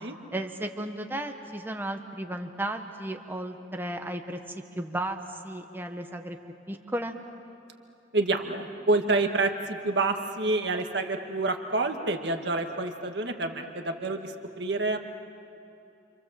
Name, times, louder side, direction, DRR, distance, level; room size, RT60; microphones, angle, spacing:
voice 1, 0.3-6.4 6.7-7.2, right 1 dB, 10° right, 5 dB, 1.2 m, -34 dB
voice 2, 8.1-15.0, right 2 dB, 60° right, 4 dB, 1.9 m, -28 dB
29.0 x 26.5 x 7.6 m, 2.8 s
head